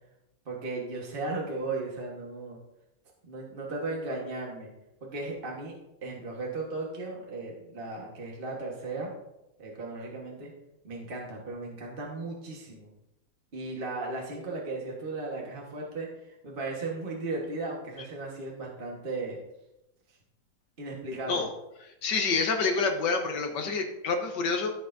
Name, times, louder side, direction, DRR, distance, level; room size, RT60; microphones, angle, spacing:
voice 1, 0.4-2.6 3.2-4.7 5.0-9.1 9.6-10.5 10.8-12.9 13.5-19.4 20.8-21.4, right 3 dB, 30° right, -2 dB, 1.4 m, -36 dB
voice 2, 22.0-24.7, left 4 dB, 70° left, 4 dB, 1.7 m, -27 dB
14.0 x 6.5 x 2.6 m, 0.91 s
omnidirectional pair, 2.0 m